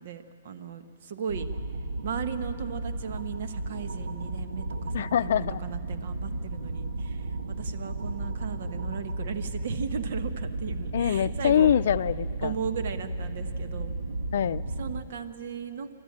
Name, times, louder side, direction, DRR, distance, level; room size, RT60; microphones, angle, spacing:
voice 1, 0.0-1.5 2.0-11.7 12.4-13.9 14.8-15.9, right 7 dB, 60° right, 9 dB, 1.3 m, -37 dB
sound 1, 1.3-15.0, right 2 dB, 90° right, 1.5 m, -34 dB
voice 2, 4.9-5.6 10.9-12.5 14.3-14.6, left 9 dB, 65° left, 15 dB, 0.5 m, -24 dB
28.0 x 13.0 x 8.8 m, 2.8 s
hypercardioid pair, 150°, 0 cm